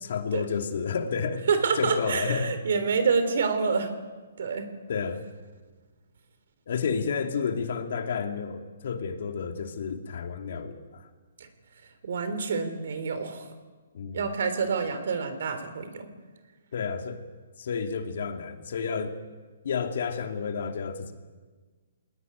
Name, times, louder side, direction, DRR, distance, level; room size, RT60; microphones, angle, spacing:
voice 1, 0.0-1.4 1.8-2.5 4.9-5.2 6.7-11.1 13.9-14.3 16.7-17.2 17.6-19.1 19.6-21.1, left 6 dB, 60° left, 5 dB, 2.7 m, -31 dB
voice 2, 1.5-3.9 4.4-4.7 12.0-13.5 14.1-16.1, right 5 dB, 65° right, 10 dB, 3.6 m, -27 dB
21.5 x 19.0 x 9.4 m, 1.4 s
hypercardioid pair, 155°, 0 cm